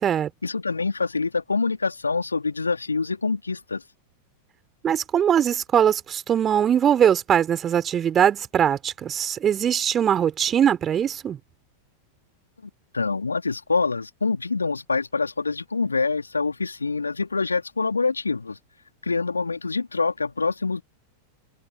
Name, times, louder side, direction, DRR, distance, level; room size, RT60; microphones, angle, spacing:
voice 1, 0.4-3.8 12.6-18.6 19.0-20.8, left 4 dB, 80° left, 3.0 m, -25 dB
voice 2, 4.8-11.4, right 9 dB, 25° right, 3.8 m, -21 dB
open air
figure-of-eight pair, 90°, 0 cm